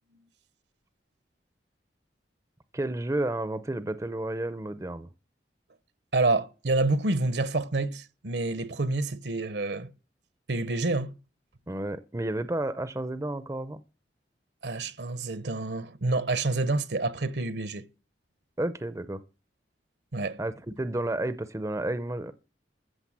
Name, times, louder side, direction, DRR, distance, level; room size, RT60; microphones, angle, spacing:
voice 1, 2.7-5.1 11.7-13.8 18.6-19.2 20.4-22.3, right 1 dB, 15° right, 0.5 m, -31 dB
voice 2, 6.1-9.9 10.5-11.1 14.6-17.9 20.1-20.4, right 2 dB, 70° right, 0.9 m, -28 dB
14.5 x 6.4 x 7.4 m
head